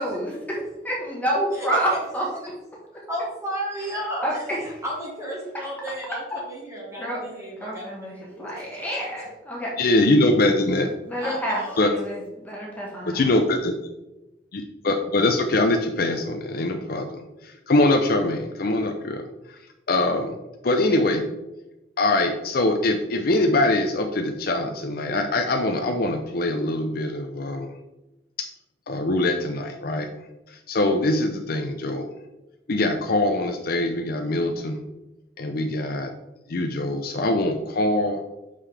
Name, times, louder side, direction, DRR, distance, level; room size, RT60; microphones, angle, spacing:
voice 1, 0.0-0.3 0.8-2.3 4.2-4.8 6.3-6.4 7.0-7.2 7.6-9.7 11.0-13.3, right 1 dB, 10° left, -4 dB, 1.3 m, -28 dB
voice 2, 3.1-4.3 4.8-9.0 11.2-11.8, equal, 15° right, -3 dB, 1.6 m, -33 dB
voice 3, 9.8-10.9 11.8-11.9 13.1-13.7 14.5-19.2 19.5-19.6 19.9-20.4 20.6-21.3 22.0-27.7 28.9-30.1 30.5-32.1 32.7-34.8 35.4-36.1 36.5-38.2, left 2 dB, 55° left, 4 dB, 0.6 m, -23 dB
6.5 x 5.6 x 3.4 m, 0.99 s
head